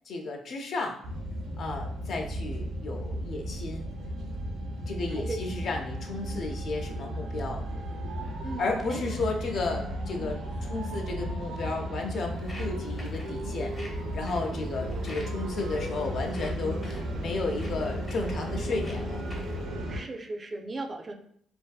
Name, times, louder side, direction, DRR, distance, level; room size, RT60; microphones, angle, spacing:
voice 1, 0.1-1.0 1.6-3.9 4.8-7.6 8.6-13.7 14.1-19.2, left 3 dB, 60° left, 2 dB, 0.4 m, -33 dB
sound 1, 1.0-20.0, equal, 85° right, 0.5 m, -34 dB
voice 2, 8.4-9.0 19.9-21.1, right 2 dB, 35° right, 4 dB, 0.3 m, -37 dB
Walk footsteps, 12.3-19.7, left 1 dB, 30° left, 0.7 m, -49 dB
2.5 x 2.4 x 2.2 m, 0.67 s
cardioid pair, 90°, 0 cm